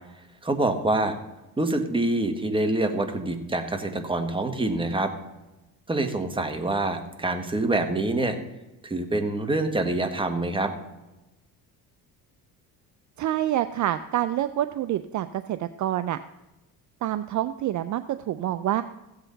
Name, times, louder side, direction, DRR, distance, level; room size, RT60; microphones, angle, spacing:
voice 1, 0.4-1.1 1.6-5.1 5.9-8.3 8.8-10.7, right 2 dB, 15° right, 6 dB, 1.5 m, -26 dB
voice 2, 13.2-16.2 17.0-18.8, right 12 dB, 50° right, 12 dB, 0.5 m, -27 dB
15.5 x 8.1 x 4.0 m, 1.0 s
cardioid pair, 100°, 37 cm